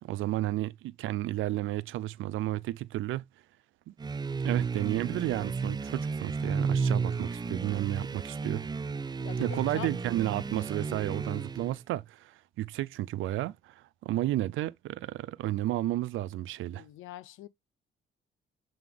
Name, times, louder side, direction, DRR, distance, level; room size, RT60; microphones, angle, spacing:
voice 1, 0.0-3.2 3.9-4.0 4.4-8.7 9.4-16.8, right 15 dB, 85° right, 0.5 m, -32 dB
sound 1, 4.0-11.8, right 4 dB, 20° right, 0.5 m, -33 dB
voice 2, 9.2-9.9 16.7-17.5, left 14 dB, 85° left, 0.6 m, -43 dB
7.7 x 3.8 x 3.5 m
cardioid pair, 90°, 20 cm